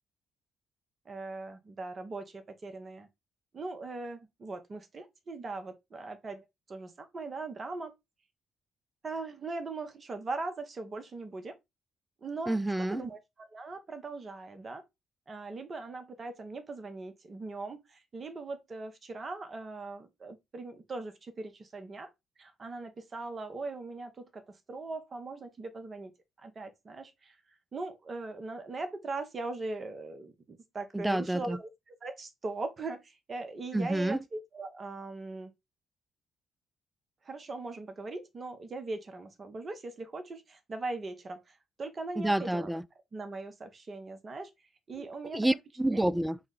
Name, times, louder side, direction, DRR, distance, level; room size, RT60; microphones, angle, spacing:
voice 1, 1.1-3.1 3.5-7.9 9.0-11.6 12.2-12.6 12.9-14.8 15.3-22.1 22.4-26.1 26.4-27.4 27.7-31.7 32.0-35.5 37.2-42.8 43.1-44.5 44.9-45.5 45.9-46.0, right 3 dB, 45° right, 0.8 m, -40 dB
voice 2, 12.5-13.0 30.9-31.6 33.7-34.2 42.2-42.8 45.3-46.4, right 1 dB, 10° right, 0.3 m, -28 dB
4.8 x 2.2 x 3.7 m
hypercardioid pair, 50°, 0 cm